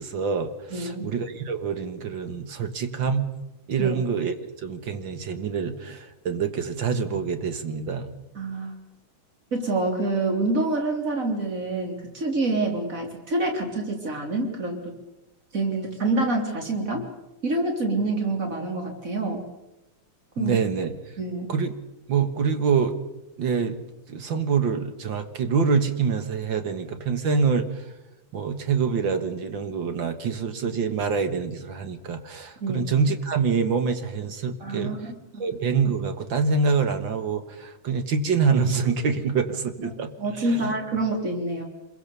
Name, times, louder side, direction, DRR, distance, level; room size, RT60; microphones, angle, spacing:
voice 1, 0.0-3.3 3.7-4.3 4.6-8.1 20.4-20.9 21.5-21.7 22.1-23.0 23.4-23.8 24.1-27.7 28.3-34.9 35.4-40.1 40.4-40.7, right 5 dB, 65° right, 8 dB, 2.2 m, -25 dB
voice 2, 0.7-1.1 3.8-4.0 8.3-8.7 9.5-14.9 15.5-17.1 17.4-19.4 20.4-20.6 21.2-21.5 32.6-32.9 34.6-35.4 40.2-41.6, right 2 dB, 35° right, 2 dB, 4.0 m, -27 dB
27.0 x 22.0 x 6.9 m, 0.96 s
omnidirectional pair, 2.3 m